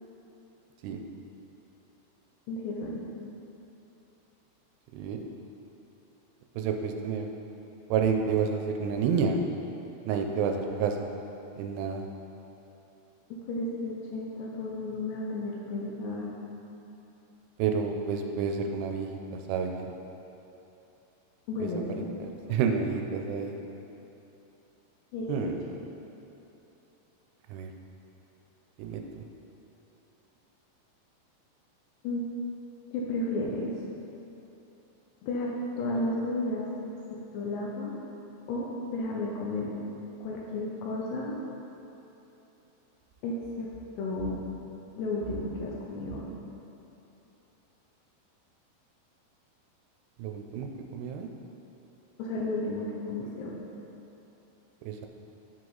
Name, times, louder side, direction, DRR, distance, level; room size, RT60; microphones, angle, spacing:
voice 1, 2.5-3.1 13.5-16.3 21.5-22.1 25.1-25.5 32.0-32.2 32.9-33.7 35.2-36.7 37.1-38.0 38.5-38.7 38.9-39.7 40.2-41.4 43.2-43.7 44.0-44.4 45.0-46.3 52.2-53.6, left 2 dB, 85° left, -4 dB, 2.9 m, -33 dB
voice 2, 4.9-5.2 6.6-7.3 7.9-9.4 10.1-11.1 11.6-12.1 17.6-19.9 21.6-23.6 25.3-25.6 27.5-27.7 28.8-29.2 50.2-51.3 54.8-55.1, right 6 dB, 90° right, 4 dB, 2.7 m, -30 dB
12.5 x 4.8 x 4.0 m, 3.0 s
omnidirectional pair, 4.8 m